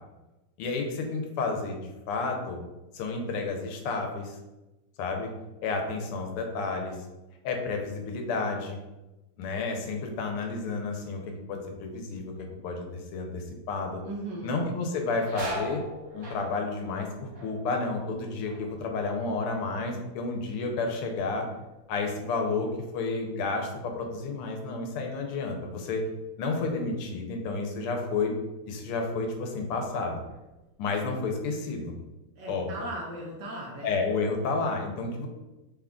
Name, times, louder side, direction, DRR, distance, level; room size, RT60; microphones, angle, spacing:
voice 1, 0.6-1.8 2.1-2.6 2.9-4.4 5.0-5.3 5.6-7.0 7.4-8.8 9.4-12.3 12.6-14.0 14.4-15.8 16.1-21.5 21.9-26.0 26.4-28.3 28.7-30.2 30.8-31.9 32.5-32.7 33.8-35.3, left 3 dB, 85° left, 2 dB, 1.6 m, -31 dB
voice 2, 14.0-14.7 32.4-34.0, right 1 dB, 70° right, -3 dB, 1.1 m, -37 dB
sound 1, 14.8-20.1 20.4-21.0 21.5-24.5 24.8-24.9 25.9-26.1 26.5-27.6 28.1-28.3 28.8-29.5 29.8-31.0, equal, 40° right, 0.7 m, -43 dB
3.9 x 2.3 x 3.6 m, 1.0 s
omnidirectional pair, 2.4 m